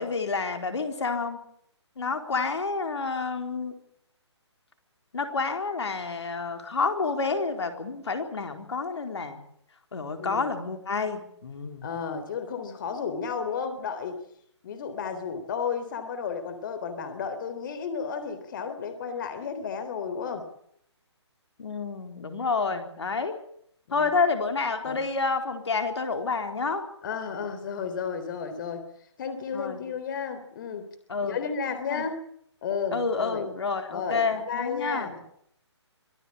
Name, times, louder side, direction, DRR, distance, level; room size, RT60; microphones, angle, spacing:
voice 1, 0.0-1.4 2.0-3.7 5.1-9.4 9.9-11.8 21.6-23.3 23.9-26.8 29.5-29.8 31.1-31.4 31.9-32.1 32.9-35.1, left 4 dB, 70° left, 5 dB, 4.1 m, -29 dB
voice 2, 11.8-14.2 14.6-20.4 22.7-22.8 24.0-24.1 24.8-25.0 27.0-28.9 29.2-30.9 31.2-32.2 32.6-33.5 33.9-35.2, left 6 dB, 45° left, 10 dB, 3.7 m, -33 dB
25.5 x 16.0 x 8.7 m, 0.68 s
figure-of-eight pair, 140°, 15 cm